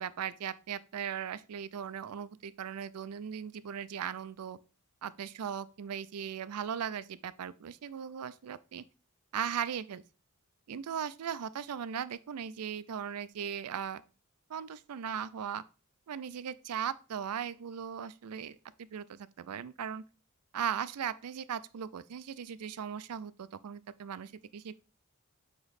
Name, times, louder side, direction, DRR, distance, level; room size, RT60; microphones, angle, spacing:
voice 1, 0.0-4.6 5.0-8.8 9.3-10.0 10.7-14.0 14.5-15.6 16.1-20.0 20.5-24.8, right 8 dB, 85° right, 0.4 m, -38 dB
8.0 x 3.0 x 4.1 m
head